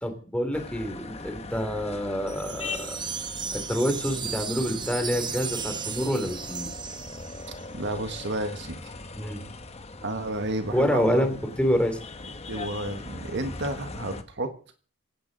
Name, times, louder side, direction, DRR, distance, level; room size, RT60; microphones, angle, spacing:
voice 1, 0.0-3.0 3.5-6.7 9.2-9.4 10.7-12.0, equal, 5° left, 6 dB, 2.9 m, -27 dB
sound 1, 0.5-14.2, left 3 dB, 30° left, 1.2 m, -40 dB
sound 2, 2.3-7.6, right 7 dB, 20° right, 0.7 m, -35 dB
voice 2, 7.7-8.9 10.0-11.3 12.5-14.5, right 2 dB, 50° right, 7 dB, 1.5 m, -31 dB
17.5 x 16.5 x 4.0 m, 0.42 s
head